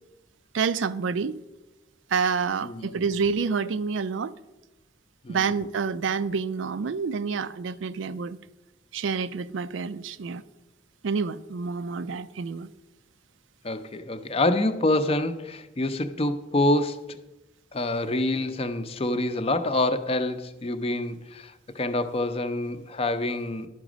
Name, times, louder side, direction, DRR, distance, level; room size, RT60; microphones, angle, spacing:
voice 1, 0.5-1.3 2.1-4.3 5.3-8.4 8.9-10.4 11.0-12.7, right 5 dB, 85° right, 0.4 m, -28 dB
voice 2, 2.6-3.0 5.2-5.4 13.6-17.2 17.7-23.7, left 2 dB, 30° left, 0.5 m, -26 dB
11.5 x 5.0 x 6.1 m
head